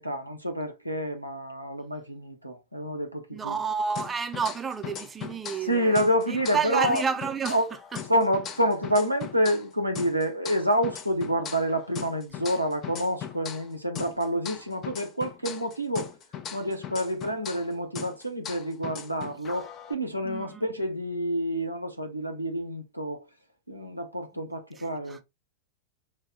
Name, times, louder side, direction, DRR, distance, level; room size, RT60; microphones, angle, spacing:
voice 1, 0.0-3.6 5.6-7.0 7.5-7.7 8.1-16.1 16.5-23.2 23.7-25.2, equal, 90° right, 0.9 m, -28 dB
voice 2, 3.3-6.0 6.3-7.6 7.9-8.0 20.2-20.6 24.8-25.2, right 6 dB, 15° right, 0.6 m, -30 dB
sound 1, 3.9-5.7 5.9-9.7 9.9-13.7 13.9-17.7 17.9-19.9, left 8 dB, 30° left, 0.6 m, -39 dB
5.4 x 2.3 x 4.0 m
figure-of-eight pair, 90°, 0 cm